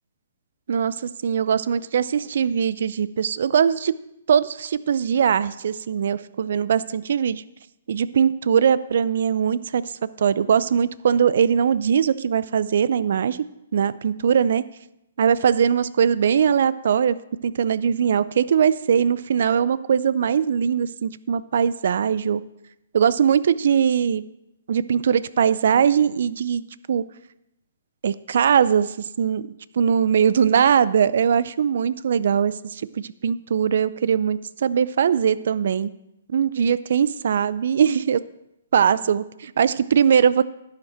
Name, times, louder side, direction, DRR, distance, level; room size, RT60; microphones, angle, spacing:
voice 1, 0.7-4.0 4.3-7.4 7.9-9.9 10.2-13.5 13.7-14.6 15.2-17.2 17.4-22.4 22.9-24.2 24.7-26.6 26.9-27.0 28.0-29.4 29.7-35.9 36.3-38.2 38.7-40.4, right 7 dB, 65° right, 18 dB, 0.4 m, -21 dB
11.5 x 8.9 x 4.3 m, 0.84 s
hypercardioid pair, 130°, 0 cm